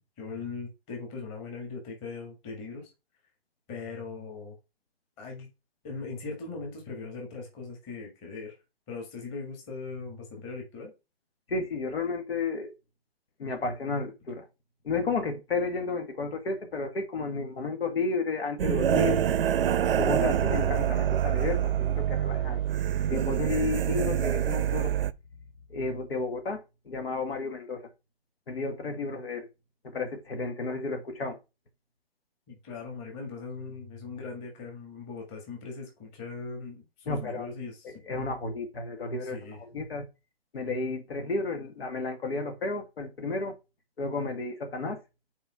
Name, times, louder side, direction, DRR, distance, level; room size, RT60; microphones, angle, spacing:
voice 1, 0.0-2.9 3.7-4.6 5.2-5.5 5.8-8.5 8.9-10.9 32.5-37.9 39.3-39.6, left 4 dB, 20° left, 1.8 m, -40 dB
voice 2, 11.5-12.7 13.4-14.5 14.8-19.2 20.0-22.6 23.1-25.0 25.7-27.9 28.5-29.5 29.8-31.4 37.1-37.5 37.8-40.1 40.5-43.6 44.0-45.0, left 3 dB, 75° left, 1.9 m, -32 dB
sound 1, 18.6-25.1, right 10 dB, 65° right, 0.6 m, -26 dB
5.5 x 4.6 x 4.7 m
hypercardioid pair, 165°, 30 cm